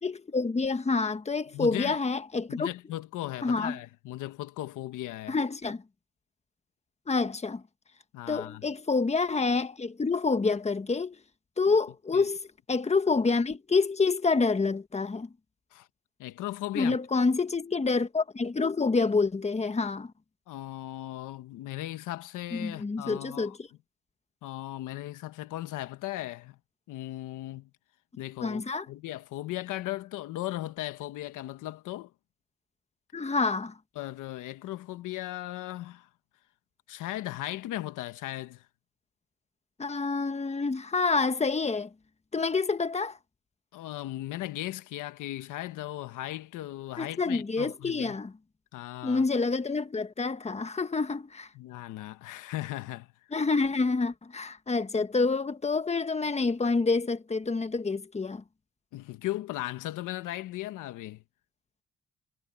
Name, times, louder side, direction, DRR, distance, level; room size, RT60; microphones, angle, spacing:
voice 1, 0.0-2.7 3.4-3.8 5.3-5.8 7.1-7.6 8.3-11.1 11.6-15.3 16.7-20.1 22.5-23.7 28.4-28.9 33.1-33.7 39.8-41.9 42.3-43.2 47.0-48.3 49.0-51.5 53.3-58.4, left 4 dB, 20° left, 1.4 m, -27 dB
voice 2, 1.5-2.0 2.5-5.4 8.1-8.6 11.7-11.8 12.1-12.3 15.7-15.9 16.2-17.0 20.5-23.5 24.4-26.6 26.9-27.7 28.2-28.6 28.9-32.1 33.9-36.1 36.9-38.7 43.7-48.2 48.7-49.2 51.5-53.1 58.9-61.2, left 15 dB, 90° left, 1.3 m, -37 dB
cardioid pair, 90°, 30 cm